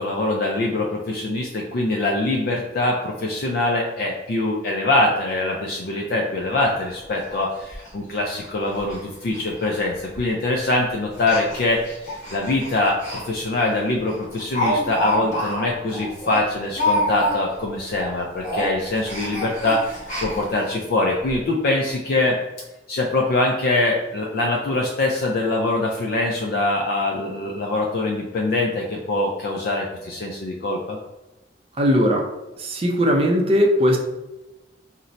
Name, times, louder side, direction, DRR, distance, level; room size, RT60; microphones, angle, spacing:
voice 1, 0.0-22.4 22.9-31.0, left 2 dB, 55° left, -1 dB, 0.4 m, -23 dB
Speech, 6.4-6.5 6.8-6.9 7.3-7.4 7.7-7.9 8.3-8.5 8.7-9.0 9.3-9.4 10.1-10.4 11.1-13.2 13.6-13.7 14.1-17.6 17.9-18.1 18.4-20.7 21.3-21.4 21.6-21.7, left 1 dB, 40° left, 1.2 m, -27 dB
voice 2, 31.8-32.3 32.6-34.0, equal, 30° right, 1 dB, 0.4 m, -18 dB
2.6 x 2.1 x 3.9 m, 1.0 s
head